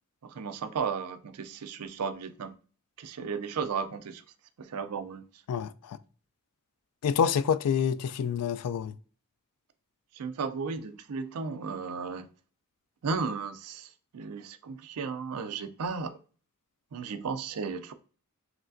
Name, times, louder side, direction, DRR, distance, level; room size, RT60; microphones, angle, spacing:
voice 1, 0.2-2.6 3.0-4.2 4.6-5.3 10.1-12.3 13.0-16.2 16.9-17.9, right 5 dB, 75° right, 0.5 m, -34 dB
voice 2, 5.5-6.0 7.0-8.9, left 7 dB, 80° left, 0.3 m, -27 dB
4.9 x 3.2 x 2.5 m
head